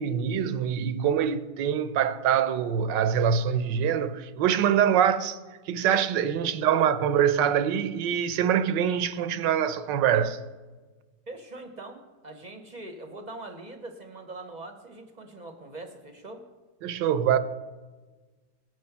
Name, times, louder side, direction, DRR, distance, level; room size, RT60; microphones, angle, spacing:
voice 1, 0.0-5.4 5.7-10.4 16.8-17.4, right 8 dB, 80° right, 1.3 m, -24 dB
voice 2, 6.4-6.8 11.3-16.4, right 2 dB, 35° right, 0.8 m, -42 dB
17.5 x 6.3 x 5.7 m
omnidirectional pair, 2.0 m